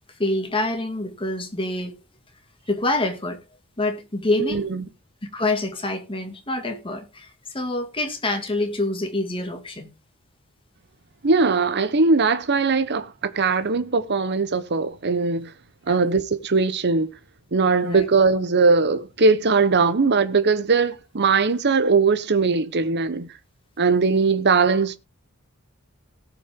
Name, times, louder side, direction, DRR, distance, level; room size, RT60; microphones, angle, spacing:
voice 1, 0.2-1.9 2.7-3.4 3.8-4.7 5.3-9.9 15.9-16.1 17.8-18.1, left 2 dB, 25° left, 2.0 m, -26 dB
voice 2, 4.4-4.8 11.2-15.5 15.9-17.1 17.5-23.3 23.8-25.0, right 4 dB, 50° right, 0.9 m, -20 dB
18.0 x 6.0 x 3.6 m
head